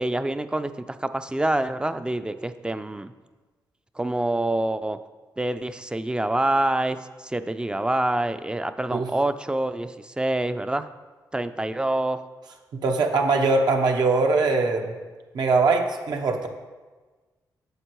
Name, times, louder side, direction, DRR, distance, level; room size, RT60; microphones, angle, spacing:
voice 1, 0.0-3.1 4.0-5.0 5.4-10.9 11.3-12.2, right 1 dB, 10° right, 11 dB, 0.3 m, -26 dB
voice 2, 12.8-15.0 15.3-16.5, right 3 dB, 75° right, 3 dB, 0.9 m, -21 dB
7.9 x 7.4 x 3.1 m, 1.3 s
cardioid pair, 80°, 7 cm